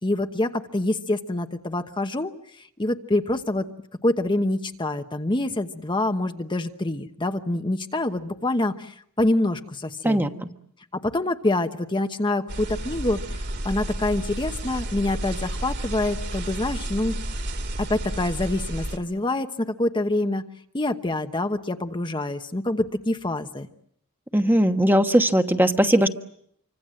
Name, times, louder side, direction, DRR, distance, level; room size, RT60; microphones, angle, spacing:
voice 1, 0.0-3.7 4.0-10.3 10.9-17.2 17.8-20.4 20.7-23.7, left 2 dB, 20° left, 7 dB, 1.1 m, -26 dB
voice 2, 10.0-10.5 24.3-26.1, right 1 dB, 10° right, 6 dB, 1.3 m, -19 dB
sound 1, 12.5-19.0, right 1 dB, 55° right, 3.2 m, -31 dB
27.5 x 25.0 x 7.7 m, 0.69 s
head